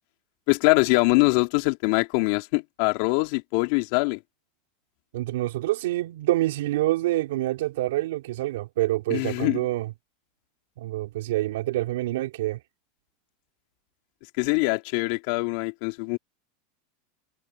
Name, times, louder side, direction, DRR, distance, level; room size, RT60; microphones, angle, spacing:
voice 1, 0.5-4.2 9.1-9.7 14.4-16.2, left 28 dB, 65° left, 2.7 m, -23 dB
voice 2, 5.1-9.9 10.8-12.6, right 16 dB, 75° right, 3.0 m, -26 dB
hypercardioid pair, 110°, 0 cm